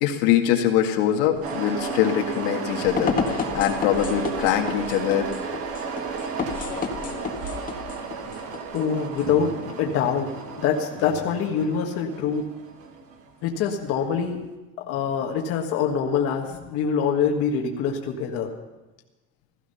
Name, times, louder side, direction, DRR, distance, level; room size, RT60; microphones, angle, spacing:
voice 1, 0.0-3.1 3.5-5.3, left 10 dB, 75° left, 3 dB, 2.0 m, -22 dB
sound 1, 1.2-9.3, left 6 dB, 30° left, 1.6 m, -32 dB
sound 2, 1.4-14.1, right 5 dB, 50° right, 1.9 m, -34 dB
voice 2, 8.7-12.5 13.4-14.4 14.8-18.5, left 7 dB, 50° left, 1 dB, 1.6 m, -25 dB
16.0 x 14.0 x 5.6 m, 1.1 s
cardioid pair, 140°, 30 cm